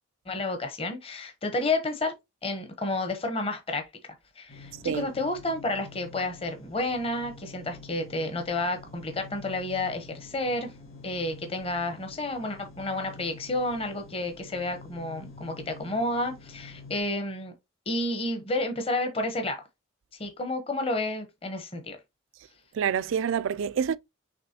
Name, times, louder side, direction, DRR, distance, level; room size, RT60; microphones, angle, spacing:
voice 1, 0.3-2.1 2.4-3.8 4.4-10.7 11.0-17.5 17.9-19.6 20.2-22.0, left 2 dB, 30° left, 0.8 m, -30 dB
sound 1, 4.5-17.0, left 3 dB, 60° left, 2.0 m, -48 dB
voice 2, 22.7-24.0, right 7 dB, 70° right, 0.3 m, -27 dB
6.0 x 3.1 x 2.8 m
head